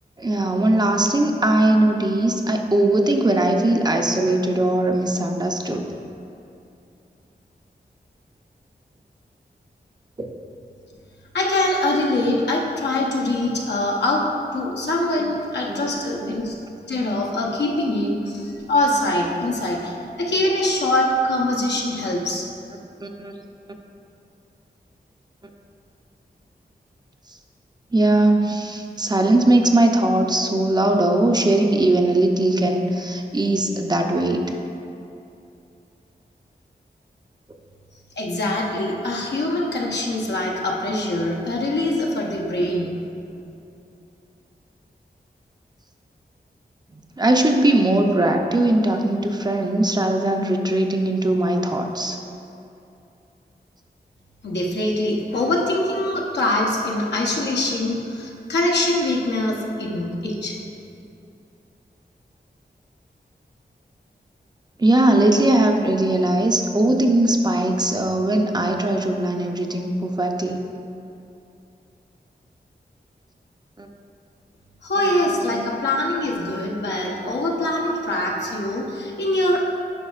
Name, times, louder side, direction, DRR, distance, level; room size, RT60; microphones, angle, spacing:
voice 1, 0.2-5.9 10.2-10.3 15.7-15.8 16.2-16.3 23.0-23.3 27.9-34.5 47.2-52.2 64.8-70.6 73.8-73.9 75.5-75.7, right 1 dB, 25° right, 3 dB, 0.5 m, -20 dB
voice 2, 11.3-14.3 14.5-16.6 16.9-22.4 38.2-43.0 54.4-60.6 74.8-79.6, left 1 dB, 85° left, -3 dB, 0.9 m, -23 dB
9.7 x 5.3 x 2.4 m, 2.7 s
wide cardioid pair, 90°, 17 cm